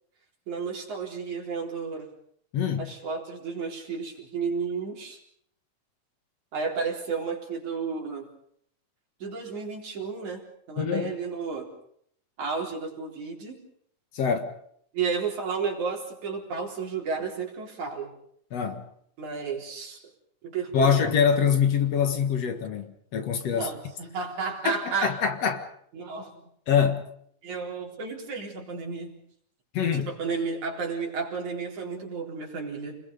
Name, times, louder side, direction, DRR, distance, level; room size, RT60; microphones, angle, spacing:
voice 1, 0.5-2.1 2.8-5.2 6.5-8.3 9.2-11.7 12.4-13.6 14.9-18.1 19.2-20.0 20.4-21.0 23.5-25.2 25.9-26.5 27.4-29.2 29.9-33.0, right 5 dB, 75° right, 5.4 m, -32 dB
voice 2, 2.5-2.9 10.8-11.1 14.1-14.5 18.5-18.8 20.7-23.7 24.6-25.6 26.7-27.0 29.7-30.1, left 7 dB, 60° left, 2.7 m, -24 dB
29.5 x 21.0 x 5.4 m
omnidirectional pair, 3.4 m